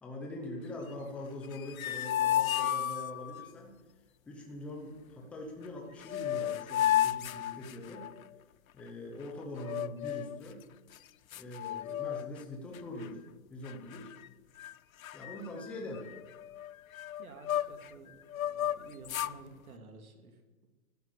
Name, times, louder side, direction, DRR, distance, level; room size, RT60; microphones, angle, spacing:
voice 1, 0.0-3.8 4.3-8.1 8.7-10.6 11.3-13.2 13.5-14.1 15.1-16.1, left 1 dB, 5° left, 0 dB, 0.8 m, -43 dB
sound 1, 1.4-3.5 5.6-5.7 6.0-8.2 9.6-10.4 10.9-11.0 11.3-12.4 12.7-13.1 13.6-14.3 14.6-14.7 15.0-17.9 18.3-19.4, left 12 dB, 70° left, 0.6 m, -33 dB
voice 2, 17.2-20.7, right 3 dB, 75° right, 5 dB, 2.9 m, -52 dB
14.0 x 12.0 x 8.4 m, 1.2 s
hypercardioid pair, 170°, 43 cm